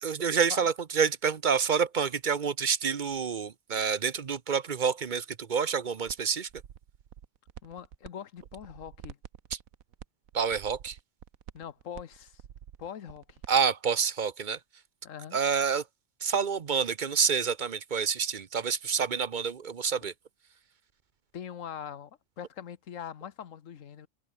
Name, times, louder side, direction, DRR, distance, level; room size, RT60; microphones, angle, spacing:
voice 1, 0.0-6.5 10.3-11.0 13.5-14.6 15.3-15.8 16.2-20.1, right 6 dB, 40° right, 0.8 m, -28 dB
sound 1, 6.1-6.2 6.5-8.1 8.4-13.6, right 9 dB, 85° right, 1.5 m, -48 dB
voice 2, 7.6-9.2 11.5-12.4 12.8-13.4 15.0-15.4 21.3-24.1, left 8 dB, 70° left, 1.5 m, -42 dB
omnidirectional pair, 1.4 m